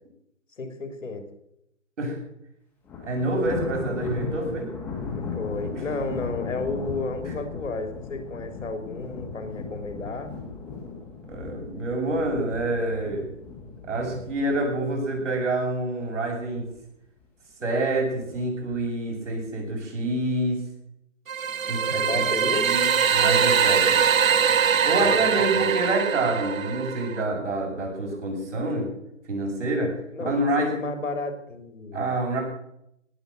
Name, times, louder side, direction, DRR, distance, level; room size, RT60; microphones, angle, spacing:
voice 1, 0.6-1.3 5.2-10.3 22.0-22.7 25.0-25.7 30.1-32.4, left 3 dB, 75° left, 6 dB, 3.5 m, -32 dB
Thunder, 2.8-16.1 16.5-16.8 17.2-17.3 18.2-18.8, left 4 dB, 5° left, 1.7 m, -37 dB
voice 2, 3.0-4.7 5.7-5.8 6.1-6.2 7.3-7.4 11.3-13.2 13.9-16.7 17.6-20.6 21.7-22.2 22.5-24.0 24.8-28.9 29.3-29.9 30.2-30.8 31.9-32.4, right 2 dB, 65° right, 0 dB, 7.5 m, -27 dB
sound 1, 21.3-27.2, right 7 dB, 85° right, 1.0 m, -22 dB
18.0 x 8.2 x 7.9 m, 0.78 s
hypercardioid pair, 165°, 39 cm